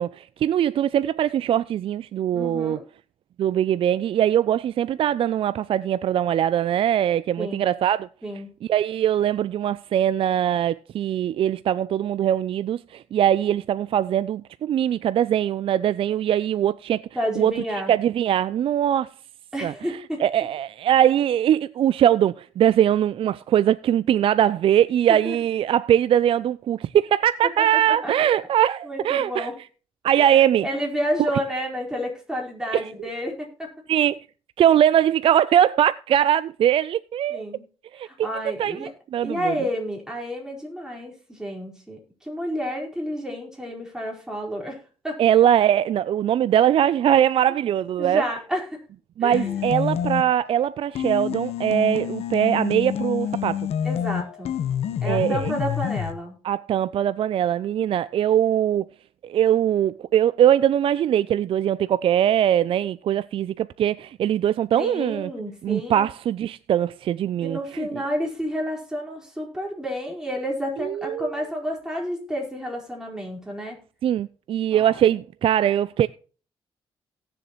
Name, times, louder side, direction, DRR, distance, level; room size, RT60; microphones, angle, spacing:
voice 1, 0.0-2.8 3.4-8.1 8.7-17.0 17.4-17.5 17.9-19.1 19.6-19.7 20.2-29.5 30.0-30.7 32.7-32.8 33.9-34.2 34.6-37.4 37.9-39.6 45.2-48.2 49.2-53.7 55.0-55.5 56.4-58.9 59.2-65.3 65.6-67.9 70.8-71.3 74.0-76.1, right 10 dB, 60° right, 0.4 m, -21 dB
voice 2, 2.3-2.8 7.4-7.7 8.2-8.5 17.1-17.9 19.5-20.2 25.1-25.4 27.6-28.1 28.8-29.6 30.2-33.7 37.3-37.7 38.0-38.9 39.2-45.2 48.0-48.7 49.2-49.6 53.8-54.5 55.0-56.3 64.8-66.1 67.4-73.8 74.7-75.0, equal, 5° right, 4.5 m, -30 dB
sound 1, 49.3-50.5 51.0-56.1, left 9 dB, 80° left, 1.1 m, -28 dB
18.0 x 7.1 x 3.0 m
cardioid pair, 95°, 10 cm